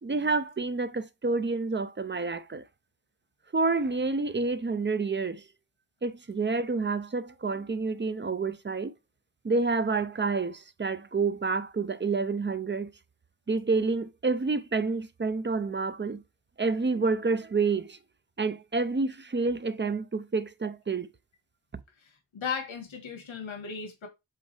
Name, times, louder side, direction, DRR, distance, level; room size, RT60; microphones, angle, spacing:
voice 1, 0.0-2.6 3.5-5.4 6.0-8.9 9.4-12.9 13.5-16.2 16.6-18.0 18.4-21.1, right 4 dB, 25° right, 0.5 m, -28 dB
voice 2, 22.0-24.1, left 6 dB, 85° left, 1.8 m, -36 dB
7.5 x 3.7 x 3.4 m
wide cardioid pair, 85°, 46 cm